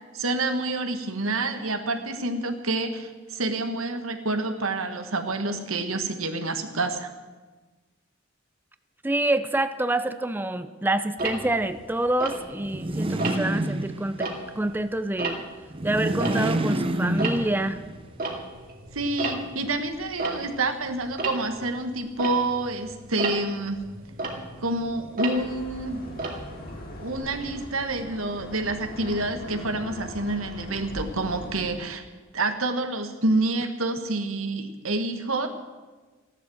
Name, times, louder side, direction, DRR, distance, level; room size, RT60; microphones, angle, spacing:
voice 1, 0.0-7.1 18.9-23.8 24.6-26.0 27.0-32.0 32.3-35.5, right 2 dB, 90° right, 7 dB, 1.7 m, -28 dB
voice 2, 9.0-14.3 14.5-15.4 15.8-17.8, right 1 dB, 10° right, 10 dB, 0.6 m, -27 dB
Tick-tock, 11.2-12.8 13.2-13.6 14.0-16.8 17.0-27.2, right 2 dB, 45° right, 2.5 m, -34 dB
sound 1, 12.6-14.4 15.7-17.9, right 1 dB, 25° right, 0.9 m, -28 dB
sound 2, 25.3-31.8, left 1 dB, 50° left, 2.6 m, -40 dB
15.0 x 11.5 x 7.8 m, 1.3 s
head